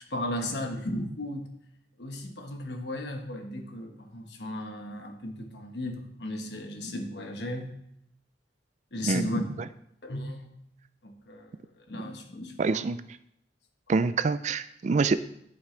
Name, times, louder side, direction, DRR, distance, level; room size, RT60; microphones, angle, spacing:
voice 1, 0.1-1.5 2.0-7.8 8.9-9.4 10.0-10.6 11.0-11.5 11.8-12.9, left 1 dB, 65° left, 4 dB, 1.2 m, -35 dB
voice 2, 12.6-13.0 13.9-15.2, right 4 dB, 40° right, 13 dB, 0.3 m, -25 dB
11.5 x 5.8 x 3.3 m, 0.76 s
head